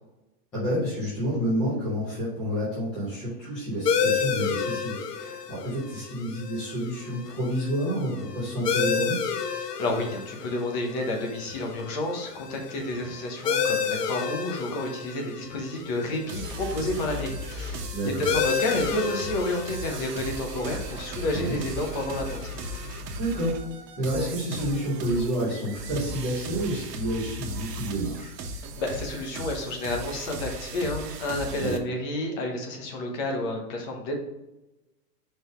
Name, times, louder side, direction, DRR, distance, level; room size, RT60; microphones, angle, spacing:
voice 1, 0.5-9.3 17.9-18.2 21.3-21.6 23.2-23.6 24.0-28.3 31.6-31.8, equal, 5° left, -14 dB, 0.4 m, -29 dB
sound 1, 3.9-23.0, left 6 dB, 80° left, 1.0 m, -32 dB
voice 2, 9.6-22.4 28.5-34.2, left 1 dB, 30° left, 2 dB, 1.1 m, -30 dB
sound 2, 16.3-31.8, right 1 dB, 80° right, 1.3 m, -37 dB
5.2 x 4.0 x 5.0 m, 1.0 s
hypercardioid pair, 165°, 47 cm